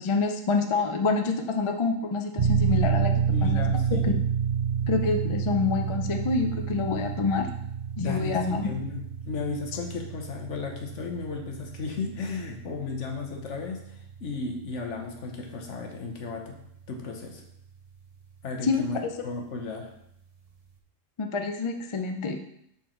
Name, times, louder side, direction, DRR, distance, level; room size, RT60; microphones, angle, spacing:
voice 1, 0.0-3.1 3.4-3.6 3.9-4.2 4.9-7.5 8.0-8.7 18.6-18.8 21.2-22.4, left 4 dB, 50° left, 5 dB, 0.3 m, -27 dB
sound 1, 2.4-16.8, right 7 dB, 35° right, 0.6 m, -30 dB
voice 2, 3.3-4.2 8.0-16.6 16.9-17.4 18.4-19.9, left 4 dB, 65° left, 2 dB, 1.3 m, -34 dB
6.3 x 4.2 x 4.4 m, 0.74 s
omnidirectional pair, 1.4 m